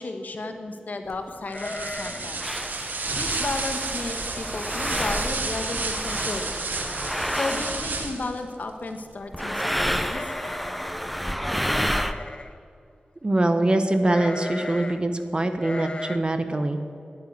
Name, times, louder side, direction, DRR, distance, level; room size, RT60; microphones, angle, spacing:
voice 1, 0.0-2.5 3.1-6.5 7.3-10.2, left 3 dB, 65° left, 6 dB, 1.3 m, -33 dB
sound 1, 1.1-1.2 1.9-2.0 2.4-8.2 9.3-12.1, equal, ahead, 0.7 m, -30 dB
sound 2, 1.5-2.4 2.7-2.8 3.2-3.5 4.1-4.2 4.5-5.0 5.3-5.4 6.5-6.6 6.9-7.4 10.0-11.0 11.6-12.6 14.0-15.0 15.6-16.2, left 2 dB, 35° left, 0.7 m, -36 dB
sound 3, 1.5-8.4, right 3 dB, 90° right, 1.3 m, -31 dB
voice 2, 13.2-16.8, right 1 dB, 30° right, 8 dB, 1.1 m, -23 dB
10.5 x 9.4 x 9.5 m, 2.4 s
wide cardioid pair, 90°, 3 cm